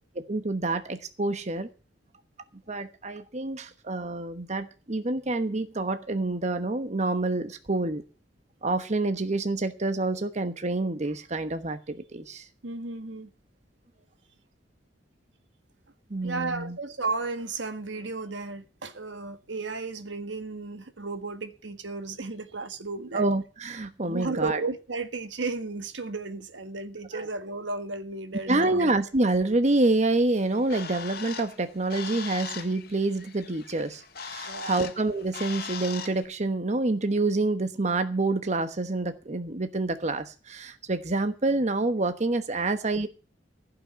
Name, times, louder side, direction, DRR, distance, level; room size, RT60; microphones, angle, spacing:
voice 1, 0.1-1.7 2.7-8.0 8.6-12.5 16.1-16.8 23.1-24.6 27.1-27.3 28.5-43.1, right 2 dB, 40° right, 1.1 m, -27 dB
voice 2, 12.6-13.3 16.2-23.2 24.1-28.9 34.4-34.8, right 3 dB, 85° right, 1.6 m, -34 dB
Bird, 30.3-36.2, left 6 dB, 55° left, 1.7 m, -40 dB
15.5 x 6.0 x 8.5 m
head